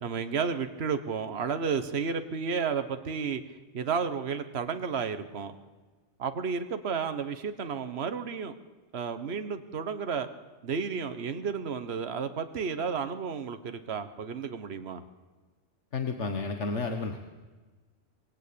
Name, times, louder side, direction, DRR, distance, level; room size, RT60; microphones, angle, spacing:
voice 1, 0.0-3.4 3.7-5.5 6.2-8.5 8.9-10.3 10.6-15.0, right 6 dB, 60° right, 9 dB, 1.5 m, -32 dB
voice 2, 15.9-17.2, left 4 dB, 70° left, 5 dB, 1.7 m, -31 dB
24.5 x 22.5 x 8.7 m, 1.3 s
omnidirectional pair, 1.3 m